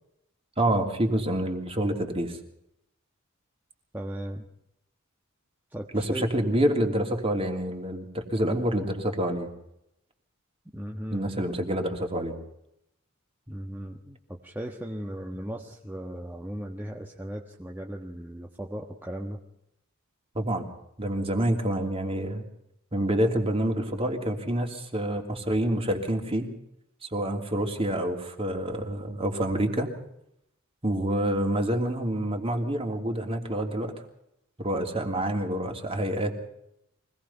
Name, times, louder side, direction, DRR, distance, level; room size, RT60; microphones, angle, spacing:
voice 1, 0.6-2.4 5.9-9.5 11.1-12.4 20.3-20.7 21.0-22.5 22.9-26.5 27.0-29.9 30.8-34.0 34.6-36.5, right 1 dB, 30° right, 3 dB, 3.1 m, -27 dB
voice 2, 3.9-4.4 5.7-6.3 10.7-11.3 13.5-19.4, right 1 dB, 10° right, 0 dB, 1.4 m, -37 dB
24.5 x 18.5 x 5.7 m, 0.79 s
head